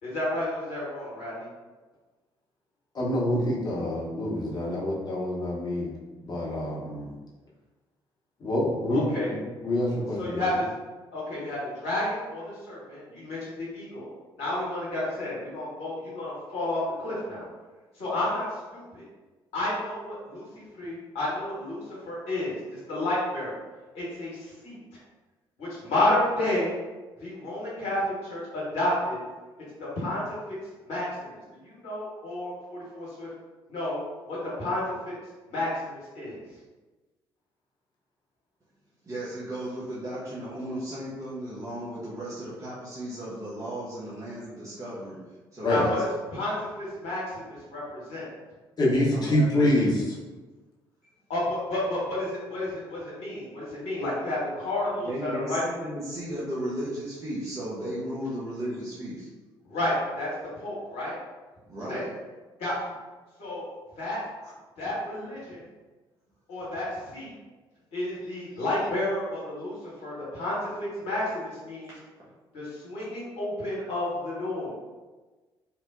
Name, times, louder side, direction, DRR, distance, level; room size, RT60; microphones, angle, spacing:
voice 1, 0.0-1.5 8.9-9.3 10.2-10.6 11.1-14.1 14.4-17.5 18.0-18.4 18.7-19.0 19.5-23.6 23.9-24.8 25.6-26.8 27.2-29.2 29.8-30.2 30.8-33.3 33.7-34.0 34.3-34.8 35.1-35.2 35.5-36.4 45.6-48.3 51.3-55.6 59.6-60.3 60.6-61.1 61.9-62.0 62.6-62.7 63.4-63.7 64.0-64.2 64.8-65.7 66.5-67.3 67.9-69.8 70.0-71.9 72.5-74.7, left 1 dB, 60° left, -7 dB, 1.1 m, -31 dB
voice 2, 2.9-5.9 6.2-7.1 8.4-10.4 45.6-45.8 48.8-50.1, left 1 dB, 35° left, -5 dB, 0.8 m, -26 dB
voice 3, 39.1-45.2 45.5-46.0 49.1-49.7 55.0-59.3 61.7-62.1 71.8-71.9, right 1 dB, 25° right, -9 dB, 0.7 m, -35 dB
2.9 x 2.1 x 2.4 m, 1.3 s
figure-of-eight pair, 45°, 13 cm